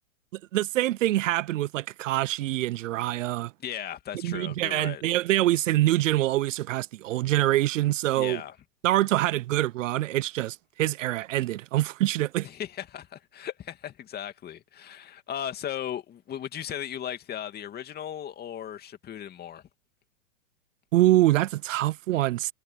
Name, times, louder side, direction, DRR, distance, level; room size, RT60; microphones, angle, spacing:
voice 1, 0.5-3.5 4.2-8.4 8.8-12.5 20.9-22.5, right 15 dB, 70° right, 0.6 m, -25 dB
voice 2, 3.6-5.0 8.2-8.6 12.4-19.6, left 10 dB, 25° left, 2.5 m, -37 dB
hypercardioid pair, 125°, 39 cm